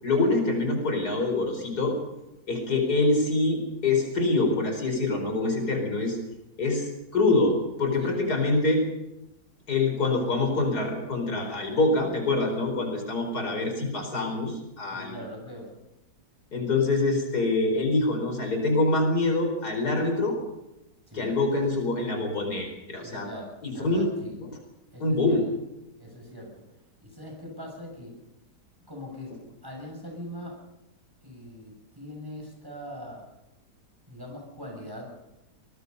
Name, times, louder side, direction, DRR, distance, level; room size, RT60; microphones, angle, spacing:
voice 1, 0.0-2.0 2.5-6.2 6.6-8.8 9.7-15.1 16.5-20.4 21.1-23.3 23.6-24.1 25.0-25.4, left 2 dB, 70° left, 3 dB, 5.3 m, -25 dB
voice 2, 14.9-15.7 21.1-21.3 23.0-24.4 24.9-25.4 26.0-26.6 27.0-28.2 28.9-30.6 31.2-33.3 34.1-35.1, left 1 dB, 15° right, 0 dB, 6.9 m, -41 dB
24.0 x 20.5 x 5.5 m, 0.93 s
omnidirectional pair, 1.7 m